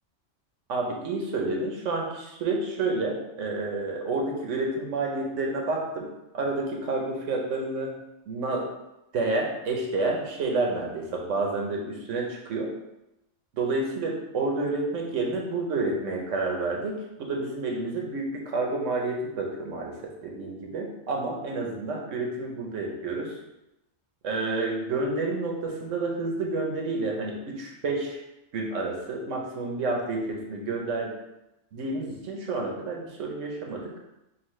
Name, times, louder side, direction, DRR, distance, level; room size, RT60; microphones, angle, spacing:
voice 1, 0.7-6.1 6.3-7.9 8.3-8.6 9.1-12.7 13.5-19.9 20.2-23.4 24.2-28.2 28.5-31.1 31.7-33.9, right 3 dB, 80° right, 0 dB, 1.1 m, -29 dB
5.6 x 2.5 x 3.1 m, 0.91 s
omnidirectional pair, 1.3 m